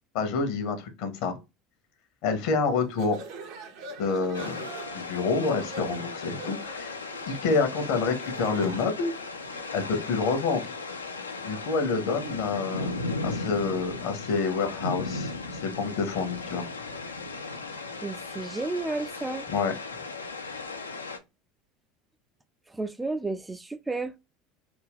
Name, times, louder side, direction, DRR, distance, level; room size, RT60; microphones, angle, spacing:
voice 1, 0.1-1.3 2.2-3.2 4.0-4.6 4.9-7.0 7.3-9.1 9.7-10.6 11.4-12.9 13.2-16.6 19.5-19.7, left 4 dB, 60° left, 0.8 m, -28 dB
sound 1, 2.6-10.1, right 3 dB, 60° right, 0.7 m, -45 dB
sound 2, 4.3-21.2, left 3 dB, 85° left, 0.4 m, -36 dB
voice 2, 18.0-19.5 22.7-24.2, right 3 dB, 10° right, 0.3 m, -32 dB
3.4 x 2.2 x 3.5 m
figure-of-eight pair, 70°, 0 cm